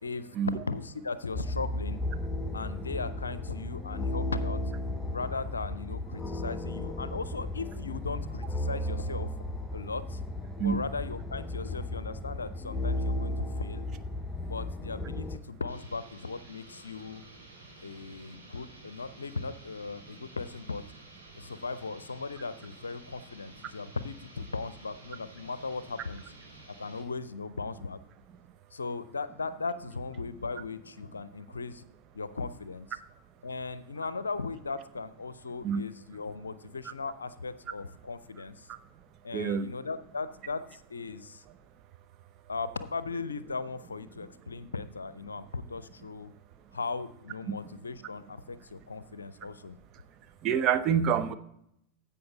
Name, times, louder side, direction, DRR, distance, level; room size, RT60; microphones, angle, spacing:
voice 1, 0.0-2.0 2.5-4.6 5.1-9.3 9.7-10.2 10.6-13.9 14.5-17.2 17.8-20.8 21.4-26.2 26.7-28.0 28.7-31.8 32.1-33.0 33.4-38.7 39.2-41.4 42.5-46.3 46.7-49.8, left 4 dB, 75° left, 15 dB, 0.6 m, -37 dB
sound 1, 1.3-15.4, left 1 dB, 10° left, 0.7 m, -34 dB
sound 2, 15.7-27.1, right 1 dB, 85° right, 4.5 m, -52 dB
voice 2, 39.3-39.7 47.5-47.6 50.4-51.4, right 7 dB, 35° right, 9 dB, 0.7 m, -27 dB
15.5 x 5.7 x 4.0 m, 0.75 s
figure-of-eight pair, 90°, 0 cm